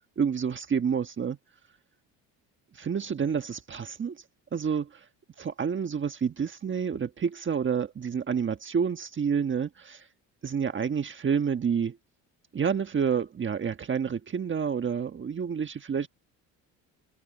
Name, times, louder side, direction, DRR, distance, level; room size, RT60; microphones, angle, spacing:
voice 1, 0.2-1.4 2.7-4.2 4.5-5.0 5.4-10.1 10.4-12.0 12.5-16.1, right 7 dB, 30° right, 1.4 m, -29 dB
supercardioid pair, 95°, 38 cm